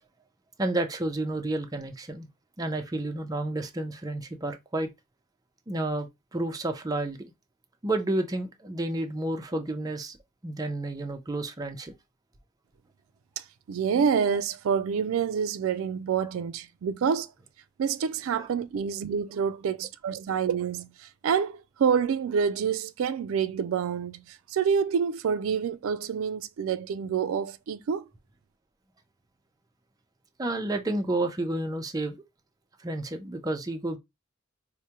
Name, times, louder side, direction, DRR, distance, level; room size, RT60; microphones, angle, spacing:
voice 1, 0.6-2.3 2.6-4.9 5.7-7.2 7.8-10.2 10.4-11.9 18.4-18.5 30.4-32.2 32.8-34.0, right 2 dB, 20° right, 0.5 m, -30 dB
voice 2, 13.4-17.3 17.8-28.0, right 7 dB, 80° right, 0.3 m, -27 dB
4.6 x 2.1 x 2.8 m
head